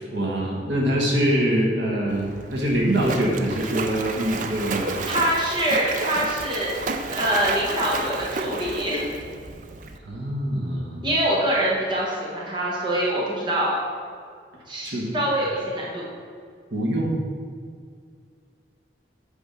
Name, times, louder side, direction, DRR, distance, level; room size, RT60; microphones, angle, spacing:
voice 1, 0.1-5.1 10.0-11.0 14.8-15.2 16.7-17.2, right 1 dB, 80° right, -2 dB, 1.3 m, -24 dB
Splash splatter, 2.1-10.0, right 3 dB, 45° right, 0.4 m, -32 dB
voice 2, 5.1-6.8 7.2-9.0 11.0-13.8 14.7-16.0, right 1 dB, 25° right, -5 dB, 1.3 m, -24 dB
8.4 x 3.5 x 5.6 m, 2.2 s
head